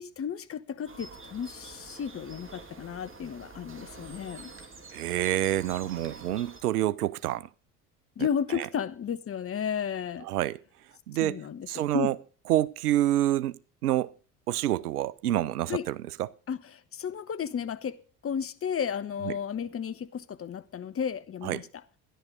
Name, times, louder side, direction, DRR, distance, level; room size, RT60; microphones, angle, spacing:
voice 1, 0.0-4.5 8.2-10.3 11.2-11.7 11.9-12.1 15.7-15.8 16.5-21.6, left 7 dB, 30° left, 1.1 m, -33 dB
sound 1, 0.9-6.6, right 4 dB, 30° right, 3.2 m, -47 dB
voice 2, 4.9-7.5 8.2-8.7 10.2-10.6 11.1-11.4 11.7-12.2 12.5-14.1 14.5-16.3 19.3-19.4 21.4-21.7, right 13 dB, 80° right, 0.6 m, -28 dB
13.0 x 11.0 x 5.2 m
figure-of-eight pair, 60°, 45 cm